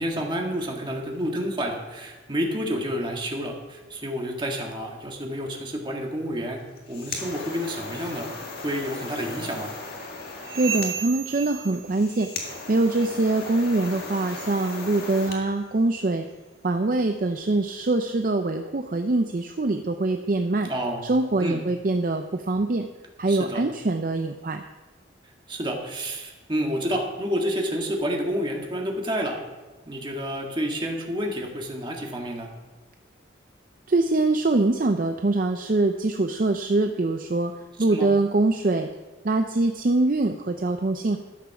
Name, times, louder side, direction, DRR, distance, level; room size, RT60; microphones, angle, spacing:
voice 1, 0.0-6.6 6.9-8.3 8.6-9.7 20.7-21.1 21.4-21.6 23.3-23.6 25.5-29.4 29.9-32.5 37.8-38.1, equal, 25° right, 0 dB, 1.7 m, -29 dB
sound 1, 6.6-15.4, left 3 dB, 50° left, 1.9 m, -37 dB
sound 2, 10.4-12.7 12.9-13.3 13.8-14.0 14.6-14.8 15.4-15.5 16.3-16.4, right 9 dB, 75° right, 1.0 m, -35 dB
voice 2, 10.5-12.3 12.7-16.3 16.6-20.7 21.1-22.9 23.2-24.6 33.9-37.5 37.8-38.9 39.2-41.2, right 2 dB, 45° right, 6 dB, 0.5 m, -23 dB
12.5 x 7.3 x 5.9 m, 1.3 s
head